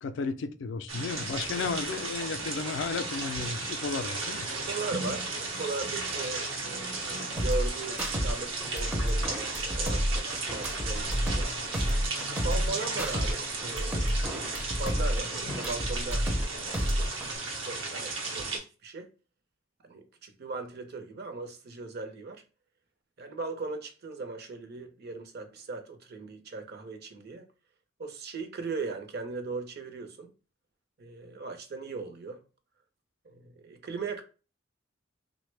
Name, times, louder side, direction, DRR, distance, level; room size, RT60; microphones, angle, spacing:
voice 1, 0.0-4.5, left 4 dB, 65° left, 0.3 m, -33 dB
sound 1, 0.9-18.6, right 3 dB, 80° right, 0.8 m, -35 dB
voice 2, 4.7-11.5 12.3-19.1 19.8-22.4 23.2-27.4 28.0-30.3 31.0-32.4 33.3-34.2, right 3 dB, 55° right, 0.6 m, -38 dB
sound 2, 7.4-8.3 8.6-11.5 11.7-13.3 13.6-16.4 16.7-17.4, equal, 10° right, 0.4 m, -30 dB
3.3 x 2.1 x 3.2 m
head